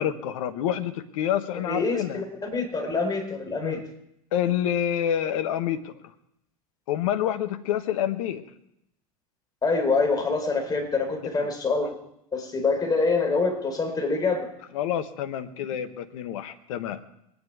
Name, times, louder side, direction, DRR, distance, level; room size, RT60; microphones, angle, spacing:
voice 1, 0.0-2.2 3.6-3.8 4.3-5.9 6.9-8.4 11.4-11.5 14.7-17.0, left 10 dB, 65° left, 10 dB, 1.2 m, -28 dB
voice 2, 1.6-3.8 9.6-11.9 12.3-14.5, left 4 dB, 20° left, 3 dB, 4.2 m, -25 dB
22.5 x 10.5 x 4.8 m, 0.78 s
hypercardioid pair, 85°, 19 cm